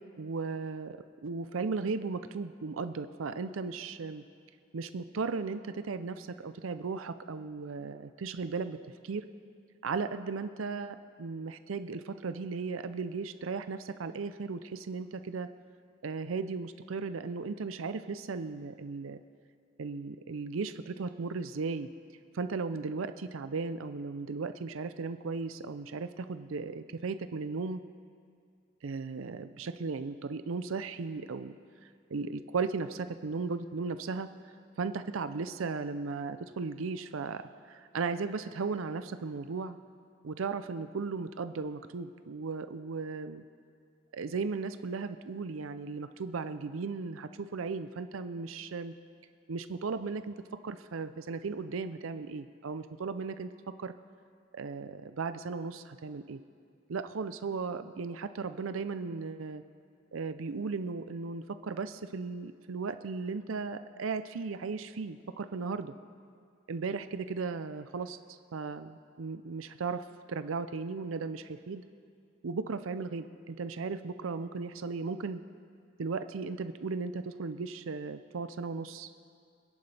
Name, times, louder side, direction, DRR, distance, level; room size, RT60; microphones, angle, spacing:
voice 1, 0.2-1.0 1.2-4.2 4.7-8.8 9.0-9.2 9.8-15.5 16.0-19.2 19.8-21.9 22.3-27.8 28.8-31.5 32.1-34.3 34.8-37.4 37.7-39.8 40.2-43.4 44.1-48.9 49.5-50.3 50.6-53.5 53.8-53.9 54.5-56.4 56.9-59.6 60.1-65.9 66.7-68.2 68.5-71.8 72.4-75.4 76.0-79.2, right 4 dB, 85° right, 11 dB, 0.5 m, -36 dB
26.0 x 10.5 x 3.4 m, 2.3 s
head